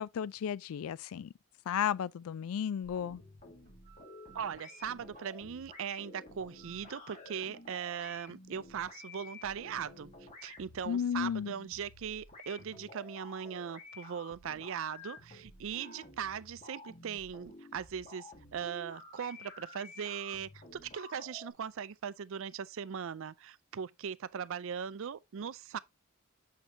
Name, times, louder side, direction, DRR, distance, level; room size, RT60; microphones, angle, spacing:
voice 1, 0.0-1.3 1.7-3.2 10.9-11.5, left 8 dB, 70° left, 0.3 m, -33 dB
sound 1, 2.8-21.5, left 2 dB, 35° left, 1.8 m, -52 dB
sound 2, 3.7-12.8, right 7 dB, 40° right, 1.0 m, -63 dB
voice 2, 4.3-10.1 10.4-25.8, right 7 dB, 65° right, 0.4 m, -39 dB
6.7 x 6.2 x 2.7 m
head